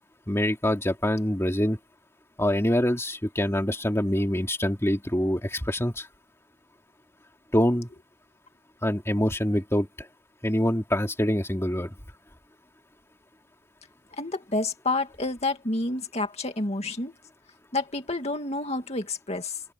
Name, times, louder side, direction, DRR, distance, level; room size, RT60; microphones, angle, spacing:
voice 1, 0.3-1.8 2.4-6.1 7.5-7.9 8.8-10.1 10.4-11.9, equal, 15° left, 2.6 m, -25 dB
voice 2, 14.2-17.1 17.7-19.6, left 2 dB, 30° left, 2.4 m, -29 dB
open air
head